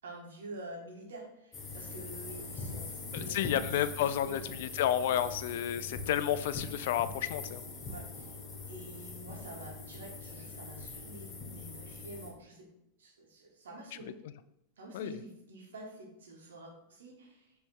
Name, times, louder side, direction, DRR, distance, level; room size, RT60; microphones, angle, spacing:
voice 1, 0.0-4.4 5.1-5.3 5.7-5.9 7.8-8.3 8.7-12.7 13.0-14.2 14.8-17.5, right 2 dB, 75° right, 0 dB, 1.5 m, -48 dB
sound 1, 1.5-12.3, left 4 dB, 30° left, 1.8 m, -42 dB
voice 2, 3.1-7.6 14.9-15.1, left 11 dB, 65° left, 13 dB, 0.4 m, -31 dB
5.3 x 3.4 x 5.4 m, 0.82 s
hypercardioid pair, 95°, 0 cm